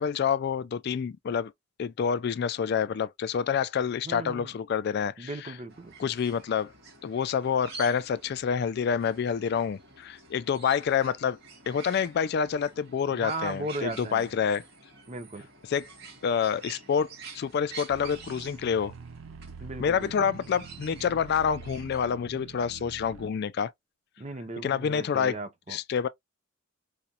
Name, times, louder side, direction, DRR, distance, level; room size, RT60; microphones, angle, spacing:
voice 1, 0.0-1.5 1.8-5.5 6.0-6.7 7.0-11.4 11.7-14.6 15.7-15.9 16.2-18.9 19.8-23.7 24.6-25.4 25.7-26.1, left 7 dB, 50° left, 0.3 m, -28 dB
voice 2, 4.1-4.5 5.2-5.9 13.1-14.3 15.1-15.5 19.6-20.3 24.2-25.8, right 2 dB, 30° right, 0.6 m, -37 dB
sound 1, 5.7-22.1, right 4 dB, 50° right, 1.8 m, -48 dB
sound 2, 17.9-23.3, right 5 dB, 75° right, 0.4 m, -46 dB
4.9 x 2.2 x 2.7 m
head